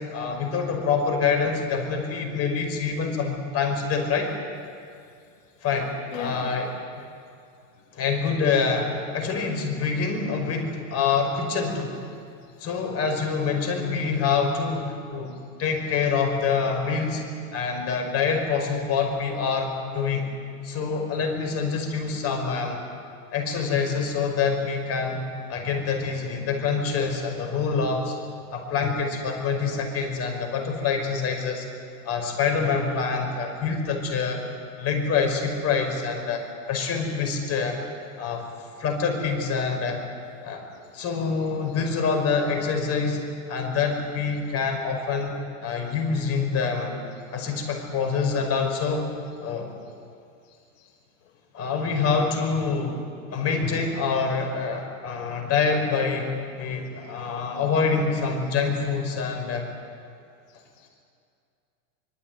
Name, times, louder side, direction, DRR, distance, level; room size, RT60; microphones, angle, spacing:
voice 1, 0.1-4.3 5.6-6.7 7.9-11.9 12.6-17.2 17.5-20.3 20.6-22.8 23.3-25.2 25.5-28.1 28.5-31.7 32.0-34.4 34.8-37.8 38.2-38.5 38.8-40.0 40.4-40.6 40.9-43.2 43.5-45.4 45.6-47.0 47.3-49.1 49.4-49.7 51.5-53.0 53.3-56.3 56.6-59.7, left 5 dB, 35° left, 4 dB, 5.8 m, -26 dB
voice 2, 6.1-6.5 12.4-12.6 15.3-15.4 15.9-16.1 47.1-47.2 50.4-50.9 56.7-56.8 60.5-60.9, left 10 dB, 60° left, 4 dB, 2.1 m, -41 dB
25.0 x 20.5 x 9.5 m, 2.4 s
hypercardioid pair, 120°, 42 cm